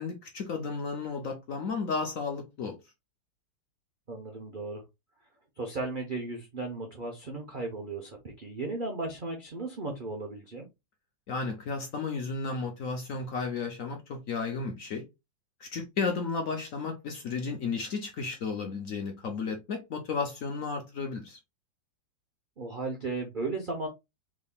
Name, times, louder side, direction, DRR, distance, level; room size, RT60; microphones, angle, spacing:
voice 1, 0.0-2.8 11.3-15.0 15.6-21.4, left 4 dB, 60° left, 0.8 m, -33 dB
voice 2, 4.1-4.8 5.6-10.7 22.6-23.9, right 3 dB, 70° right, 0.4 m, -35 dB
3.6 x 3.6 x 2.3 m
omnidirectional pair, 2.1 m